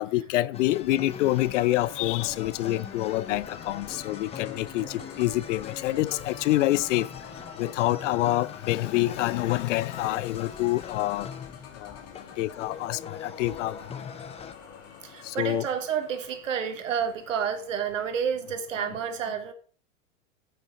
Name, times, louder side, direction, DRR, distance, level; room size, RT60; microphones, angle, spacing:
voice 1, 0.0-7.1 7.6-11.3 11.8-12.0 12.4-14.0 15.2-15.7, left 16 dB, 75° left, 0.5 m, -27 dB
sound 1, 0.5-14.5, left 7 dB, 15° left, 0.6 m, -42 dB
sound 2, 1.0-18.3, left 6 dB, 40° left, 2.5 m, -47 dB
voice 2, 15.0-19.5, right 7 dB, 85° right, 1.6 m, -30 dB
10.5 x 6.0 x 4.1 m
hypercardioid pair, 110°, 37 cm